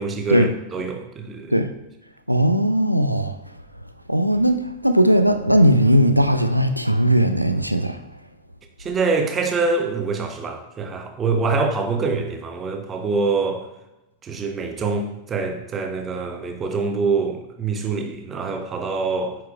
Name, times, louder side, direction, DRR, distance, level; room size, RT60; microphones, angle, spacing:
voice 1, 0.0-1.6 8.8-13.7 14.2-19.4, right 4 dB, 25° right, 0.8 m, -25 dB
voice 2, 2.3-3.4 4.1-8.0, equal, 90° right, 0.3 m, -18 dB
9.5 x 4.6 x 2.3 m
figure-of-eight pair, 90°, 0 cm